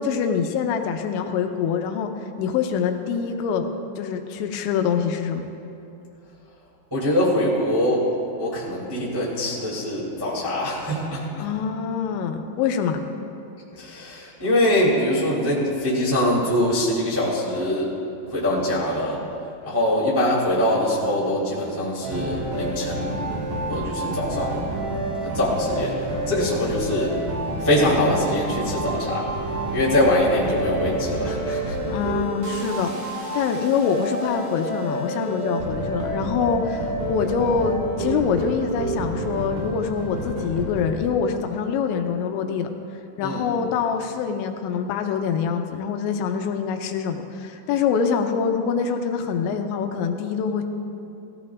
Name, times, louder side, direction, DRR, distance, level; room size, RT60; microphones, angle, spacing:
voice 1, 0.0-2.1 2.4-3.7 4.0-5.5 11.4-13.0 31.9-32.9 33.3-42.7 43.2-50.6, left 6 dB, 85° left, 5 dB, 2.9 m, -25 dB
voice 2, 6.9-8.1 8.4-11.4 13.7-17.9 18.2-19.2 19.6-23.2 23.7-24.7 25.2-27.1 27.6-29.3 29.7-31.9 43.2-43.5, left 1 dB, 10° right, -7 dB, 1.3 m, -23 dB
sound 1, 22.0-40.9, right 2 dB, 55° right, 3.1 m, -29 dB
17.5 x 16.0 x 2.4 m, 2.7 s
omnidirectional pair, 5.3 m